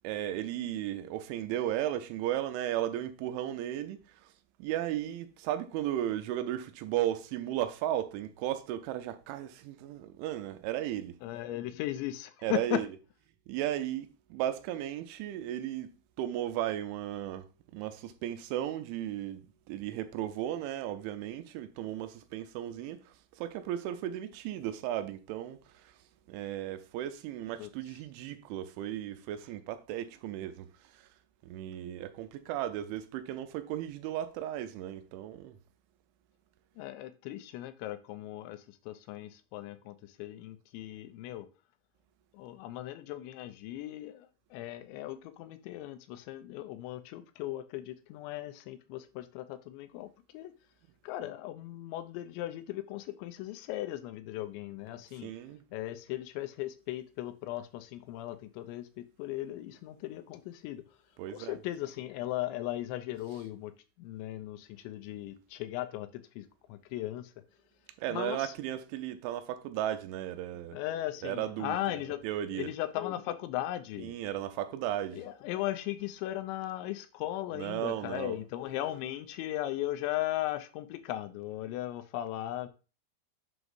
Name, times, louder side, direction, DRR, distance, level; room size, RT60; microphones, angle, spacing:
voice 1, 0.0-4.3 4.6-11.2 12.4-12.9 13.5-15.9 16.2-17.5 17.7-23.0 23.3-25.9 26.3-30.7 30.9-31.1 31.4-35.6 55.2-55.6 61.2-61.6 68.0-70.8 71.2-72.0 72.2-72.7 74.0-75.2 77.5-78.4, right 12 dB, 90° right, 3.1 m, -35 dB
voice 2, 11.2-12.8 27.6-27.7 36.8-41.5 42.3-50.5 51.0-55.3 55.7-60.8 61.3-63.7 64.0-67.3 68.1-68.5 70.7-72.2 72.5-74.1 75.1-82.7, left 14 dB, 80° left, 2.8 m, -37 dB
7.8 x 6.0 x 2.6 m
omnidirectional pair, 5.3 m